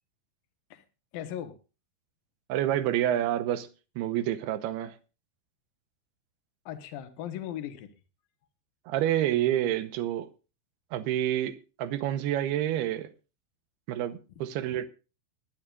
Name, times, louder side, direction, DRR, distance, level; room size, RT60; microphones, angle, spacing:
voice 1, 1.1-1.5 6.7-7.9 14.4-14.8, left 11 dB, 70° left, 2.9 m, -38 dB
voice 2, 2.5-3.7 4.0-4.9 8.9-10.3 10.9-13.1 13.9-14.9, right 12 dB, 85° right, 2.8 m, -28 dB
22.0 x 11.0 x 2.4 m
omnidirectional pair, 4.6 m